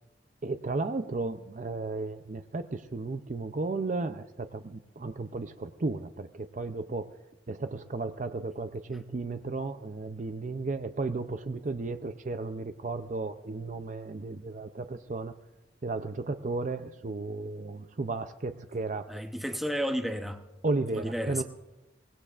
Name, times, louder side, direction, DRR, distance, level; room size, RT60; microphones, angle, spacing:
voice 1, 0.4-7.1 7.5-15.4 15.8-19.1 20.6-21.4, right 3 dB, 45° right, 9 dB, 0.5 m, -34 dB
voice 2, 19.1-20.4 21.0-21.4, equal, ahead, 5 dB, 0.8 m, -32 dB
23.0 x 19.5 x 2.5 m, 1.0 s
head